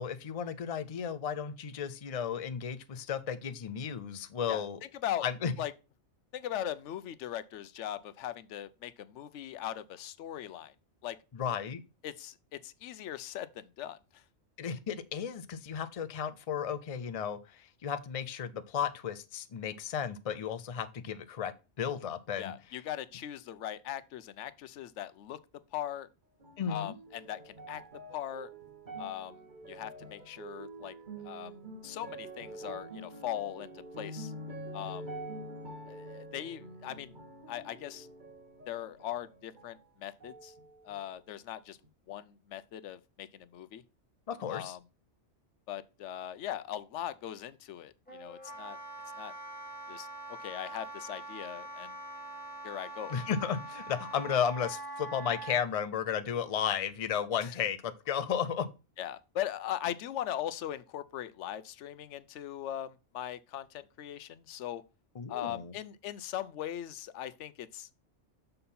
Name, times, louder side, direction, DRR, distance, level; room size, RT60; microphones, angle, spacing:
voice 1, 0.0-4.8 5.2-5.5 11.3-11.8 14.6-21.5 21.8-22.5 26.6-26.9 44.3-44.8 53.1-58.7 65.2-65.7, left 8 dB, 40° left, 0.6 m, -34 dB
voice 2, 4.5-5.3 5.6-5.7 6.3-10.7 11.0-11.2 12.0-14.2 22.4-25.4 25.7-26.1 26.7-27.8 28.1-28.5 29.0-29.4 29.7-30.9 31.2-31.6 31.8-34.3 34.7-35.1 35.9-37.1 37.5-38.1 38.7-40.5 40.8-41.8 42.1-43.8 44.5-44.8 45.7-48.8 49.2-49.3 49.9-50.1 50.4-51.9 52.6-53.2 57.4-57.5 59.0-64.8 65.3-67.9, left 11 dB, 85° left, 0.9 m, -40 dB
sound 1, 26.4-39.9 40.2-41.2 41.8-41.9, right 2 dB, 45° right, 1.2 m, -46 dB
Wind instrument woodwind instrument, 48.1-55.6, right 2 dB, 10° left, 1.6 m, -43 dB
6.7 x 4.2 x 5.4 m
omnidirectional pair, 1.2 m